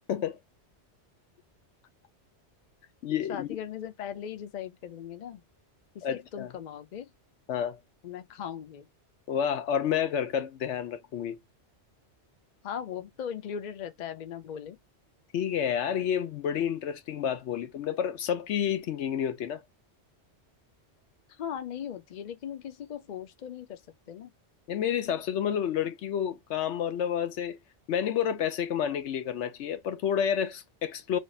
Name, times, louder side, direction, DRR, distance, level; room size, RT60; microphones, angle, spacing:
voice 1, 0.1-0.4 3.0-3.5 6.0-6.5 7.5-7.8 9.3-11.4 15.3-19.6 24.7-27.6 27.9-31.2, left 9 dB, 80° left, 0.9 m, -29 dB
voice 2, 3.3-5.4 5.9-7.1 8.0-8.9 12.6-14.8 21.3-23.8 24.1-24.3, left 9 dB, 50° left, 0.6 m, -38 dB
3.3 x 2.3 x 4.1 m
omnidirectional pair, 1.2 m